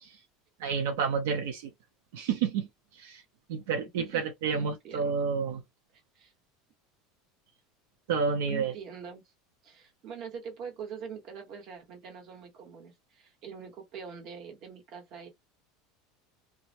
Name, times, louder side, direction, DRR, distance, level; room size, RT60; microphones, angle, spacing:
voice 1, 0.6-1.7 2.1-2.7 3.0-3.2 3.5-5.6 8.1-8.7, right 6 dB, 85° right, 0.6 m, -29 dB
voice 2, 4.5-5.2 6.1-6.3 8.5-9.3 9.6-15.3, right 7 dB, 40° right, 1.1 m, -44 dB
2.2 x 2.0 x 2.8 m
supercardioid pair, 160°, 0 cm